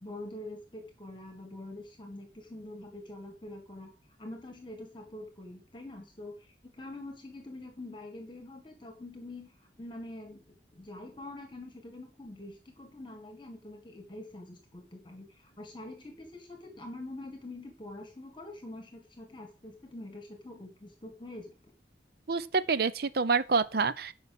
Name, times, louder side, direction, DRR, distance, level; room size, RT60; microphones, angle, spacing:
voice 1, 0.0-3.9 4.2-9.5 9.8-10.4 10.7-21.5, left 2 dB, 25° left, 1.8 m, -45 dB
voice 2, 22.3-24.1, right 4 dB, 60° right, 0.7 m, -27 dB
11.0 x 5.6 x 6.6 m
head